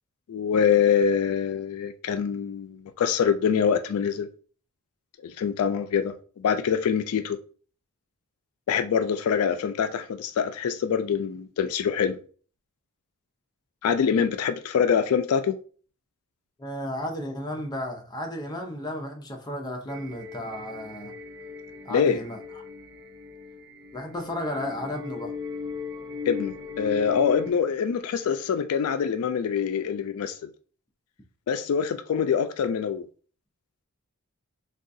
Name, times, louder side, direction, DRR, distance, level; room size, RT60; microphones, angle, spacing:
voice 1, 0.3-4.3 5.2-7.4 8.7-12.2 13.8-15.6 21.9-22.2 26.3-30.5 31.5-33.1, left 7 dB, 80° left, 0.3 m, -25 dB
voice 2, 16.6-21.1 21.8-22.6 23.9-25.3 32.1-32.2, left 1 dB, 20° left, 0.5 m, -34 dB
sound 1, 19.9-27.5, left 4 dB, 55° right, 0.5 m, -38 dB
3.6 x 2.3 x 2.6 m
head